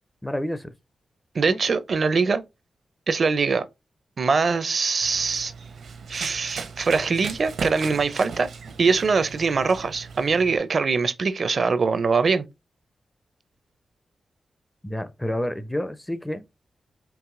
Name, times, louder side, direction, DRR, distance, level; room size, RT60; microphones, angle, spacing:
voice 1, 0.2-0.7 1.5-1.6 14.8-16.4, left 1 dB, 5° left, 0.4 m, -29 dB
voice 2, 1.3-2.4 3.1-3.7 4.2-5.5 6.1-8.5 8.8-12.4, right 4 dB, 50° right, 0.5 m, -22 dB
Run, 5.0-10.6, right 5 dB, 80° right, 0.9 m, -37 dB
4.7 x 3.0 x 3.7 m
wide cardioid pair, 120°, 0 cm